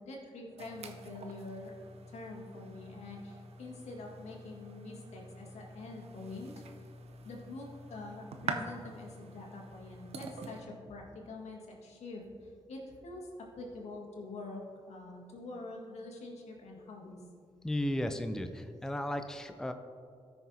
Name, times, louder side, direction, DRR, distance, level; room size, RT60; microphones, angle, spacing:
voice 1, 0.0-1.7 2.1-6.5 7.2-14.6 14.9-17.2, left 2 dB, 75° left, -1 dB, 1.7 m, -45 dB
sound 1, 0.6-10.6, right 3 dB, 70° right, 0.7 m, -45 dB
voice 2, 17.6-19.7, left 1 dB, 5° left, 7 dB, 0.5 m, -34 dB
13.5 x 6.1 x 2.8 m, 2.3 s
supercardioid pair, 55°, 11 cm